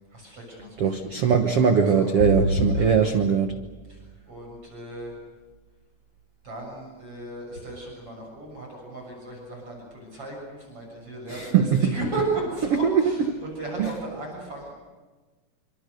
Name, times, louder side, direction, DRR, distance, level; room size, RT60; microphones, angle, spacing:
voice 1, 0.1-1.1 1.7-2.1 2.7-3.1 3.9-4.0 4.3-5.1 6.4-13.2 13.6-14.7, right 2 dB, 35° right, -1 dB, 7.8 m, -35 dB
voice 2, 0.8-3.6 11.3-11.9 12.7-13.0 13.3-13.4 13.8-13.9, right 7 dB, 65° right, 6 dB, 1.5 m, -21 dB
sound 1, 2.2-4.3, left 1 dB, 60° left, 6.2 m, -28 dB
28.0 x 26.0 x 6.7 m, 1.3 s
omnidirectional pair, 4.4 m